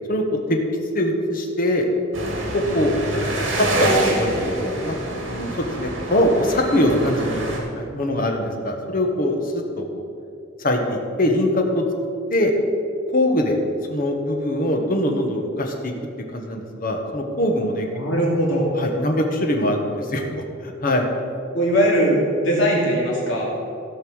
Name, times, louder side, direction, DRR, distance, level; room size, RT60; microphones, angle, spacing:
voice 1, 0.9-1.9 2.5-2.9 3.6-5.0 5.3-7.4 7.8-10.0 10.6-11.8 12.3-12.5 13.1-13.6 13.9-15.9 16.3-17.9 18.8-21.1, left 1 dB, 45° left, 3 dB, 1.4 m, -22 dB
sound 1, 2.1-7.6, right 1 dB, 70° right, 2.6 m, -26 dB
voice 2, 17.9-18.7 21.5-23.4, equal, 65° left, -4 dB, 2.9 m, -20 dB
16.0 x 5.6 x 6.3 m, 2.5 s
head